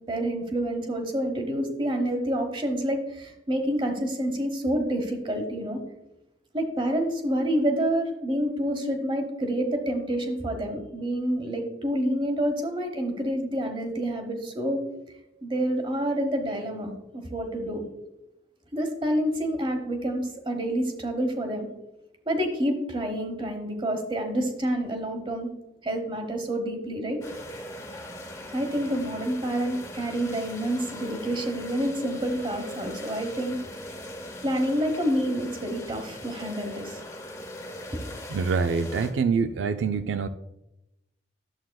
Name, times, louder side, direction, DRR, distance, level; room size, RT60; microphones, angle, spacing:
voice 1, 0.1-5.8 6.5-14.8 15.4-17.8 18.7-21.7 22.3-25.5 25.8-27.2 28.5-33.6 34.4-37.0 37.9-38.0, right 1 dB, 30° right, 5 dB, 1.1 m, -28 dB
sound 1, 27.2-39.1, left 1 dB, 15° left, 1.0 m, -40 dB
voice 2, 38.3-40.3, right 5 dB, 85° right, 9 dB, 0.4 m, -25 dB
11.5 x 7.5 x 2.3 m, 0.89 s
head